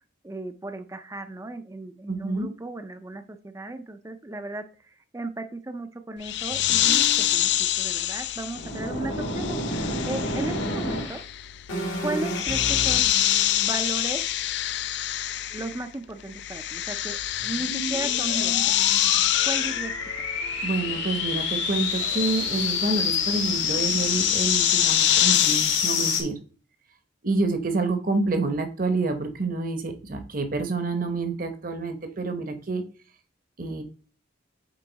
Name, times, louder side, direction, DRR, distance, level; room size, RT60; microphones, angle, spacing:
voice 1, 0.2-11.2 12.0-13.1 13.6-14.2 15.5-18.8 19.4-19.9 20.2-20.3, right 2 dB, 15° right, 9 dB, 0.4 m, -35 dB
voice 2, 2.1-2.5 20.6-26.4 27.2-32.8 33.6-33.8, right 3 dB, 45° right, 7 dB, 0.9 m, -28 dB
sound 1, 6.2-25.9, left 13 dB, 60° left, 0.4 m, -26 dB
sound 2, 6.5-7.4 8.5-11.2 11.7-13.8 17.4-26.2, left 4 dB, 75° left, 1.8 m, -29 dB
8.2 x 3.8 x 4.0 m, 0.39 s
head